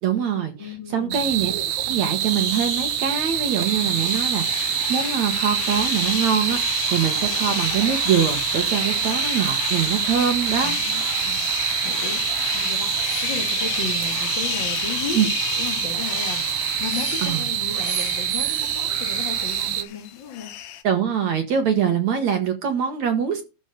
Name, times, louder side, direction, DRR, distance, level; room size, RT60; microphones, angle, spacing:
voice 1, 0.0-10.8 15.1-15.3 17.2-17.4 20.8-23.4, right 8 dB, 55° right, 2.3 m, -24 dB
voice 2, 0.6-1.3 10.6-11.5 11.8-12.2 12.5-12.9 13.2-15.2 15.5-16.4 16.8-20.5, left 5 dB, 45° left, 1.6 m, -34 dB
sound 1, 1.1-19.8, right 12 dB, 80° right, 3.0 m, -26 dB
sound 2, 1.9-20.8, left 12 dB, 70° left, 2.7 m, -31 dB
13.5 x 5.2 x 6.8 m
omnidirectional pair, 4.6 m